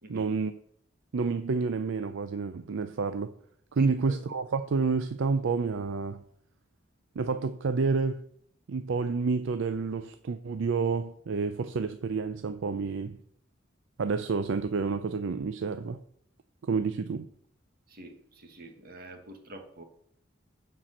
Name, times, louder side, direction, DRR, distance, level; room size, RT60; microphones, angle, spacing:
voice 1, 0.1-0.5 1.1-3.3 3.7-6.2 7.2-8.2 8.7-13.2 14.0-16.0 16.6-17.3, right 4 dB, 70° right, 0.4 m, -29 dB
voice 2, 17.9-19.8, right 1 dB, 50° right, 1.5 m, -46 dB
9.8 x 4.6 x 6.4 m
head